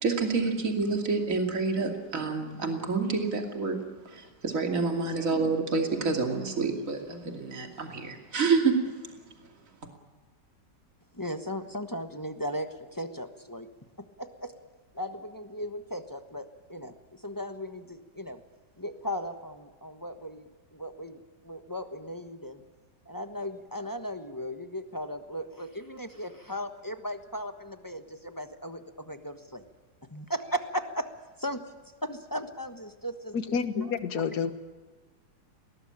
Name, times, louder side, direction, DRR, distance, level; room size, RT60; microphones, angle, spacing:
voice 1, 0.0-3.8 4.0-8.7, right 4 dB, 50° right, 3 dB, 3.0 m, -28 dB
voice 2, 11.1-13.7 14.2-14.5 14.9-18.4 18.8-22.6 23.0-29.6 30.1-31.1 31.4-31.7 32.0-33.4 33.7-33.9, equal, 15° left, 7 dB, 1.1 m, -37 dB
voice 3, 33.3-34.5, left 6 dB, 65° left, 10 dB, 1.9 m, -29 dB
21.0 x 18.5 x 8.9 m, 1.3 s
omnidirectional pair, 1.9 m